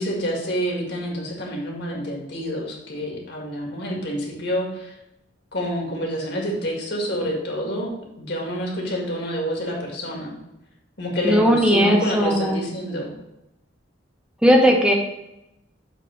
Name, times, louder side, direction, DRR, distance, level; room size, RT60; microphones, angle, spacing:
voice 1, 0.0-4.9 5.5-7.9 8.2-10.4 11.0-13.1, equal, 60° left, -1 dB, 2.0 m, -28 dB
voice 2, 11.2-12.6 14.4-14.9, equal, 5° right, 0 dB, 1.1 m, -17 dB
7.8 x 3.8 x 5.1 m, 0.88 s
head